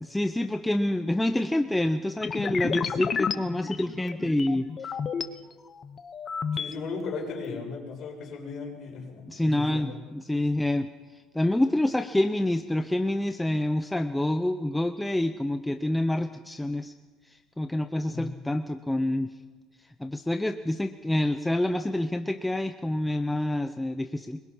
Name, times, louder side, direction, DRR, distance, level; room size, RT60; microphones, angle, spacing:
voice 1, 0.0-4.7 9.3-10.9 11.3-16.9 17.3-19.3 20.0-24.4, left 1 dB, 5° left, 8 dB, 0.7 m, -27 dB
sound 1, 2.2-5.3 5.7-6.7, left 6 dB, 30° left, 1.0 m, -31 dB
voice 2, 6.5-9.9 18.0-18.3, left 4 dB, 45° left, 0 dB, 6.6 m, -36 dB
25.5 x 22.5 x 5.6 m, 1.3 s
cardioid pair, 145°, 0 cm